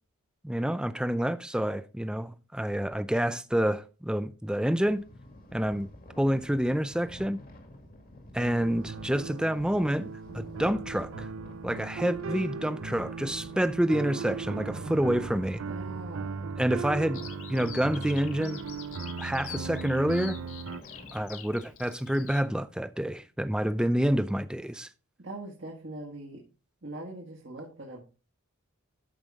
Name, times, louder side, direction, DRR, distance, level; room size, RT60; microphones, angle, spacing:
voice 1, 0.4-5.0 5.5-5.9 6.2-7.4 8.3-10.1 10.3-11.3 11.6-15.6 16.6-17.2 17.5-18.6 19.2-20.4 21.1-24.9, equal, 5° right, 0.4 m, -28 dB
sound 1, 4.8-21.3, left 1 dB, 40° left, 2.0 m, -49 dB
sound 2, 8.4-20.8, right 5 dB, 75° right, 0.5 m, -38 dB
voice 2, 14.7-15.1 15.7-16.5 25.2-26.4 26.8-28.0, right 2 dB, 55° right, 1.8 m, -42 dB
Bird vocalization bird call bird song, 17.1-22.4, left 9 dB, 75° left, 1.6 m, -46 dB
13.0 x 5.5 x 3.6 m
head